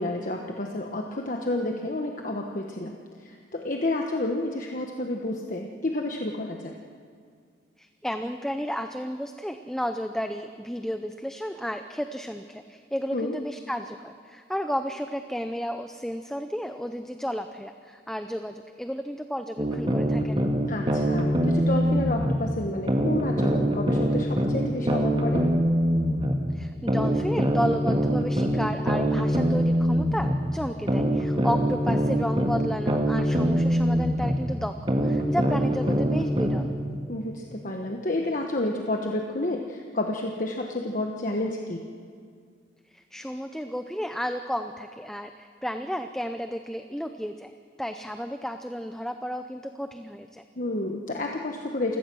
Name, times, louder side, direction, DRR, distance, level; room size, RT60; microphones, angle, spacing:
voice 1, 0.0-6.8 13.1-13.3 20.7-25.4 37.1-41.8 50.6-52.0, left 2 dB, 45° left, 2 dB, 1.3 m, -30 dB
voice 2, 7.8-20.4 26.5-36.7 42.9-47.5 47.8-50.4, equal, 5° left, 7 dB, 0.6 m, -32 dB
sound 1, 19.6-22.4 22.9-26.4 26.9-30.4 30.9-34.4 34.9-36.6, right 1 dB, 30° right, 1.9 m, -23 dB
28.5 x 17.0 x 6.3 m, 2.1 s
head